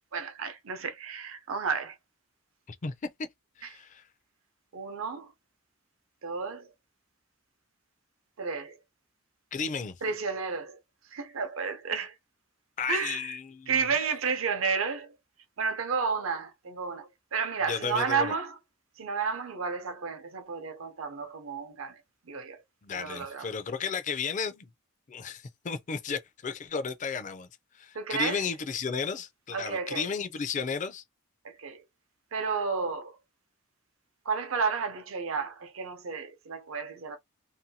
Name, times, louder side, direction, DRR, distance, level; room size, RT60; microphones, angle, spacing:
voice 1, 0.1-2.0 4.7-5.3 6.2-6.7 8.4-8.8 10.0-10.8 11.1-12.1 12.9-13.3 13.7-15.1 15.6-18.6 19.0-22.0 22.3-22.6 22.9-23.5 27.9-28.4 29.5-30.1 31.4-31.8 32.3-33.2 34.3-37.2, right 5 dB, 75° right, 0.6 m, -32 dB
voice 2, 3.6-4.0 9.5-10.0 12.8-13.9 17.6-18.3 22.8-24.7 25.1-27.5 27.7-31.0, left 5 dB, 35° left, 0.4 m, -34 dB
2.7 x 2.2 x 2.7 m
head